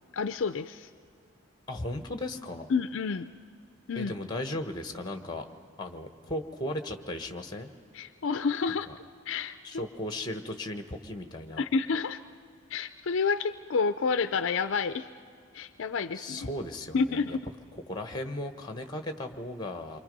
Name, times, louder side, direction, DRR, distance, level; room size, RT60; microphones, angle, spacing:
voice 1, 0.1-0.9 2.7-3.3 3.9-4.1 7.9-8.9 9.3-9.9 11.6-12.2 12.7-15.1 15.5-16.5 16.9-17.4, left 5 dB, 60° left, 11 dB, 0.4 m, -29 dB
voice 2, 1.7-2.7 4.0-5.4 5.8-7.7 8.9-9.0 9.6-11.6 16.1-17.4 17.7-20.0, left 1 dB, 20° left, 7 dB, 1.2 m, -36 dB
28.0 x 24.5 x 5.3 m, 2.4 s
head